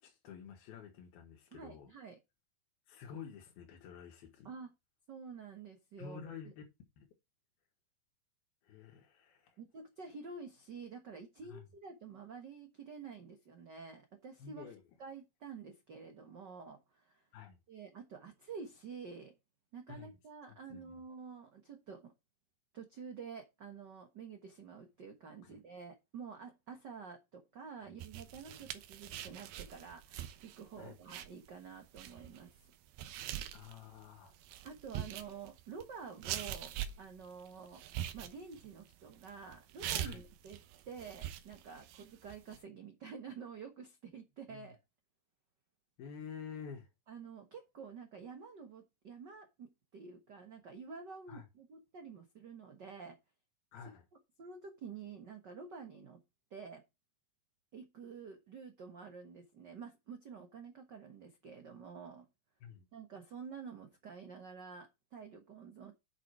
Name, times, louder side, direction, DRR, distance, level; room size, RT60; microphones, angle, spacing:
voice 1, 0.0-1.9 2.9-4.5 6.0-6.6 7.0-7.1 8.6-9.6 11.5-11.6 14.4-14.8 17.3-17.6 19.9-20.1 20.7-21.0 25.4-25.6 27.8-27.9 30.8-30.9 33.5-34.4 40.0-40.2 44.5-44.7 46.0-46.9 51.3-51.4 53.7-54.0 62.6-62.9, left 6 dB, 85° left, 3.5 m, -49 dB
voice 2, 1.5-2.2 4.4-4.7 5.1-6.3 9.6-14.7 15.0-17.3 17.7-19.3 19.7-22.1 22.7-32.7 34.6-37.8 38.1-40.6 40.8-44.8 47.1-53.2 54.4-56.2 56.5-56.8 57.7-62.3 62.9-65.9, right 5 dB, 55° right, 1.2 m, -49 dB
sound 1, 28.0-42.6, right 11 dB, 85° right, 2.8 m, -43 dB
8.6 x 6.1 x 4.6 m
omnidirectional pair, 4.3 m